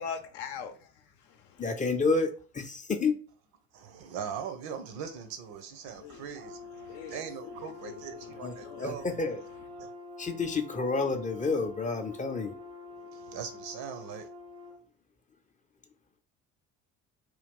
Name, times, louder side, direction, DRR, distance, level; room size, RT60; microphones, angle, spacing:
voice 1, 0.0-1.6 6.0-6.3 6.8-8.9 9.8-9.9, left 6 dB, 65° left, 0.7 m, -43 dB
voice 2, 1.6-3.2 8.4-9.4 10.2-12.6, left 3 dB, 20° left, 0.5 m, -30 dB
voice 3, 3.7-9.3 9.8-9.9 13.1-14.3, right 7 dB, 60° right, 0.7 m, -41 dB
Brass instrument, 6.3-14.8, left 3 dB, 80° right, 1.0 m, -46 dB
3.0 x 2.3 x 3.6 m
hypercardioid pair, 55°, 44 cm